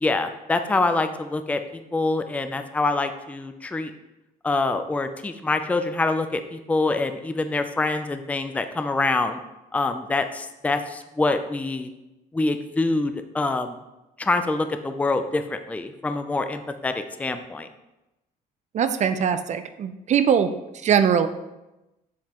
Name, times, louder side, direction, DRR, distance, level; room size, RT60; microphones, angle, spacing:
voice 1, 0.0-1.6 1.9-3.9 4.4-9.4 9.7-11.9 12.3-13.8 14.2-17.7, left 3 dB, 10° left, 8 dB, 0.4 m, -25 dB
voice 2, 18.7-20.5 20.8-21.3, right 8 dB, 45° right, 10 dB, 0.5 m, -21 dB
7.4 x 7.1 x 3.0 m, 0.98 s
cardioid pair, 110°, 17 cm